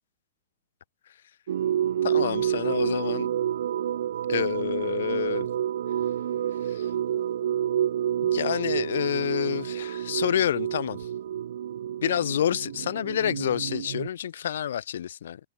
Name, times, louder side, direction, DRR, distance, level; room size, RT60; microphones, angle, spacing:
sound 1, 1.5-14.1, right 10 dB, 70° right, 1.6 m, -29 dB
voice 1, 2.0-3.3 4.3-5.5 6.6-6.9 8.3-11.1 12.0-15.4, left 10 dB, 70° left, 2.9 m, -28 dB
hypercardioid pair, 155°, 0 cm